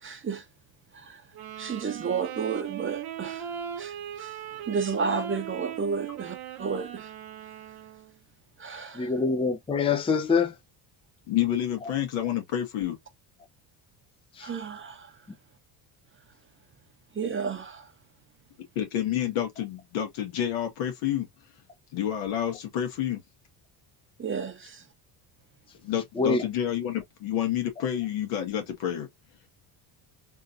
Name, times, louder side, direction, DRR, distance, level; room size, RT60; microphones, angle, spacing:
voice 1, 0.0-0.5 0.9-1.2 1.6-3.5 3.8-4.4 4.7-7.1 8.6-9.1 14.4-15.1 17.1-17.9 24.2-24.9, right 5 dB, 25° right, 0.8 m, -32 dB
Wind instrument woodwind instrument, 1.3-8.2, right 9 dB, 45° right, 1.0 m, -38 dB
voice 2, 8.9-10.5 14.4-14.5 26.2-26.4, left 5 dB, 10° left, 0.6 m, -25 dB
voice 3, 11.3-13.0 18.7-21.3 21.9-23.2 25.8-29.1, left 10 dB, 75° left, 1.5 m, -29 dB
3.6 x 2.6 x 2.6 m
supercardioid pair, 100°, 49 cm